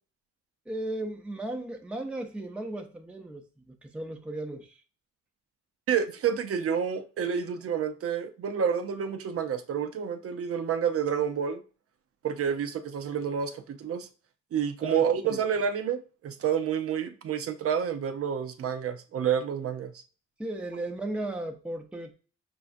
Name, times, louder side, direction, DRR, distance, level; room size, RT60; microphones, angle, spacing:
voice 1, 0.7-4.8 14.8-15.5 20.4-22.1, right 1 dB, 5° right, 0.6 m, -36 dB
voice 2, 5.9-11.6 12.2-14.1 14.5-19.9, right 7 dB, 50° right, 0.5 m, -29 dB
6.0 x 2.3 x 2.5 m
cardioid pair, 90°, 30 cm